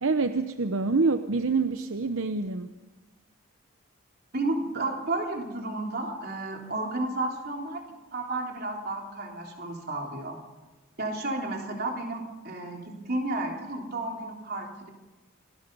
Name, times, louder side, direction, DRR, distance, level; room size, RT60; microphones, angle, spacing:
voice 1, 0.0-2.7, right 3 dB, 70° right, 9 dB, 0.9 m, -26 dB
voice 2, 4.3-7.8 8.1-10.4 11.0-14.9, right 2 dB, 45° right, 1 dB, 3.5 m, -32 dB
27.5 x 20.0 x 5.5 m, 1.2 s
head